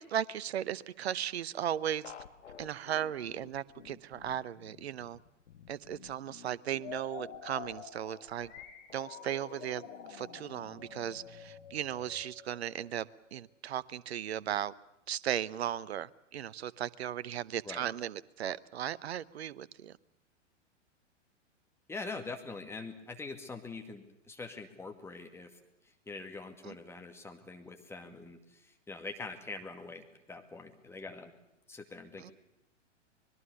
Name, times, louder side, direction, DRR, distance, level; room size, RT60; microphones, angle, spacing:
voice 1, 0.0-2.1 2.6-5.2 5.7-8.5 8.9-9.8 10.1-14.7 15.1-20.0 26.6-26.8 32.2-32.3, right 10 dB, 55° right, 0.9 m, -36 dB
sound 1, 2.0-12.2, left 8 dB, 65° left, 1.8 m, -54 dB
sound 2, 6.7-13.4, left 6 dB, 25° left, 4.5 m, -49 dB
voice 2, 21.9-25.5 26.1-31.3 31.7-32.3, left 3 dB, 5° left, 2.2 m, -44 dB
25.0 x 21.5 x 6.9 m
figure-of-eight pair, 110°, 37 cm